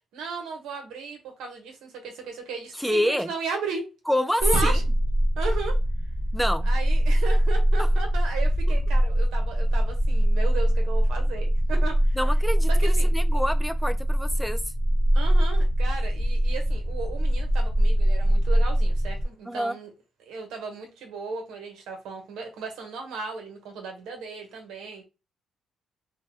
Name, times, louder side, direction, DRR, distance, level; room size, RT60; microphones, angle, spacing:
voice 1, 0.1-3.8 4.4-4.8 5.4-5.8 6.6-12.2 12.8-13.1 15.1-19.9 20.3-25.0, right 4 dB, 85° right, 1.0 m, -35 dB
voice 2, 2.8-3.3 4.1-4.8 6.3-6.7 7.8-7.9 12.2-14.6 19.5-19.7, equal, ahead, 0.4 m, -27 dB
sound 1, 4.4-19.2, equal, 30° left, 1.0 m, -22 dB
sound 2, 4.5-7.2, right 1 dB, 25° right, 0.8 m, -37 dB
2.7 x 2.2 x 3.3 m
cardioid pair, 90°, 0 cm